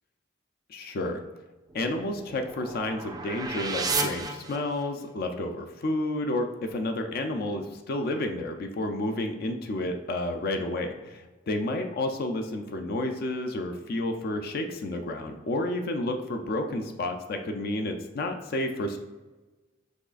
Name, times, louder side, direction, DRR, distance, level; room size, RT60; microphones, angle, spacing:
voice 1, 0.7-1.2 1.7-19.0, left 1 dB, 50° left, 5 dB, 0.4 m, -31 dB
sound 1, 1.7-5.1, right 3 dB, 20° right, 0.4 m, -33 dB
6.1 x 3.1 x 2.4 m, 1.2 s
head